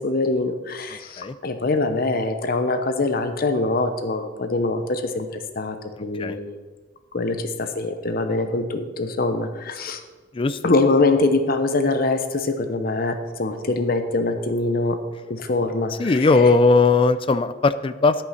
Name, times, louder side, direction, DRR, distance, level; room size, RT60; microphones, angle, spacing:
voice 1, 0.0-6.6 7.1-10.0 10.6-15.0 15.3-16.3, left 2 dB, 55° left, 8 dB, 0.9 m, -23 dB
voice 2, 16.0-18.2, left 3 dB, 30° left, 11 dB, 0.4 m, -18 dB
11.0 x 5.6 x 5.7 m, 1.3 s
head